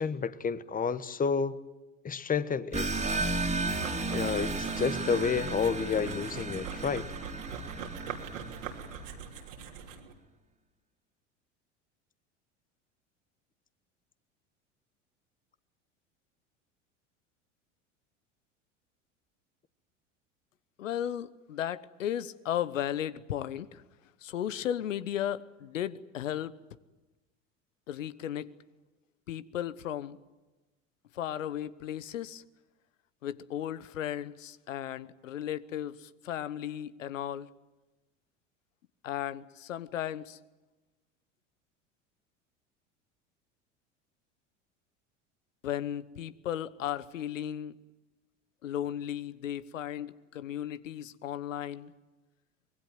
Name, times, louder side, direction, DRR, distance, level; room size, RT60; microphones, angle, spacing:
voice 1, 0.0-1.6 2.0-2.9 4.1-7.1, left 6 dB, 20° left, 15 dB, 1.2 m, -30 dB
sound 1, 2.7-9.0, right 3 dB, 15° right, 2.6 m, -34 dB
sound 2, 3.8-10.1, right 6 dB, 75° right, 3.3 m, -42 dB
voice 2, 20.8-23.8 24.2-26.6 27.9-28.5 29.3-30.2 31.1-32.4 33.2-37.5 39.0-40.4 45.6-47.7 48.6-51.9, left 11 dB, 80° left, 16 dB, 1.1 m, -35 dB
25.0 x 20.0 x 9.3 m, 1.1 s
hypercardioid pair, 80°, 38 cm